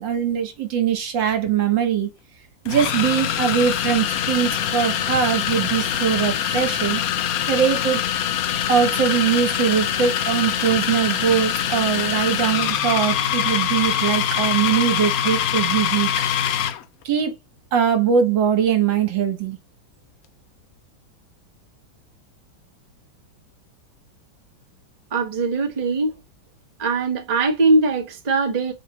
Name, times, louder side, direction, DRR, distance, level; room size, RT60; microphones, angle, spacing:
voice 1, 0.0-2.1 2.7-8.0 8.7-16.1 17.1-17.4 17.7-19.6, right 8 dB, 70° right, 1.8 m, -21 dB
sound 1, 1.3-1.5 2.7-16.8, left 10 dB, 70° left, 0.8 m, -24 dB
voice 2, 25.1-26.1 26.8-28.7, right 3 dB, 25° right, 0.9 m, -21 dB
5.1 x 3.1 x 3.0 m
omnidirectional pair, 2.1 m